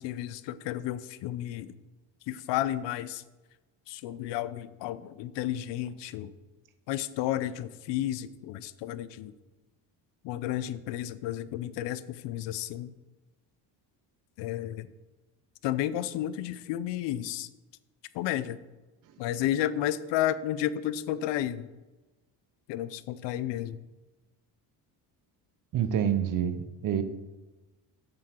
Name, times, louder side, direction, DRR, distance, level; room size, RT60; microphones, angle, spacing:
voice 1, 0.0-1.7 2.3-3.2 3.9-6.3 6.9-9.3 10.2-12.9 14.4-14.9 15.6-17.5 18.1-18.6 19.2-21.7 22.7-23.8, left 12 dB, 80° left, 15 dB, 0.6 m, -32 dB
voice 2, 25.7-27.0, right 9 dB, 50° right, 11 dB, 0.7 m, -27 dB
7.6 x 6.0 x 4.4 m, 1.1 s
cardioid pair, 140°, 43 cm